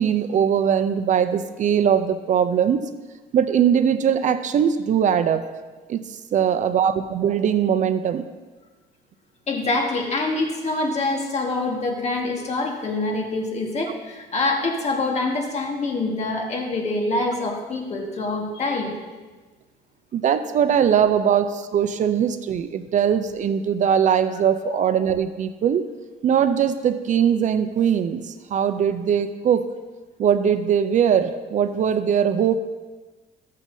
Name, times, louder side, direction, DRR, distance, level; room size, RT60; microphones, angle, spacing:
voice 1, 0.0-2.8 3.3-5.4 5.9-8.3 20.1-25.8 26.2-29.6 30.2-32.6, right 8 dB, 45° right, 11 dB, 0.5 m, -21 dB
voice 2, 9.5-18.9 24.6-24.8, left 2 dB, 40° left, 1 dB, 1.6 m, -25 dB
13.0 x 7.3 x 2.7 m, 1.3 s
cardioid pair, 110°, 17 cm